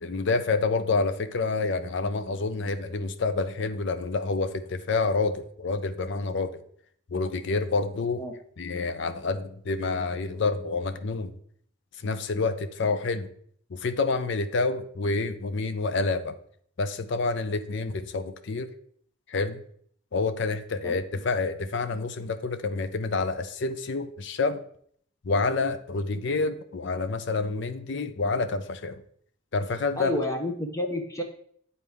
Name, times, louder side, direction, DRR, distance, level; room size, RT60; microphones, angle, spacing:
voice 1, 0.0-6.6 7.1-8.2 8.6-11.3 12.0-13.3 13.7-16.4 16.8-18.7 19.3-19.6 20.1-24.6 25.2-29.0 29.5-30.1, left 3 dB, 60° left, 11 dB, 0.5 m, -28 dB
voice 2, 30.0-31.2, left 1 dB, 15° left, 3 dB, 0.7 m, -29 dB
9.3 x 4.1 x 3.5 m, 0.63 s
head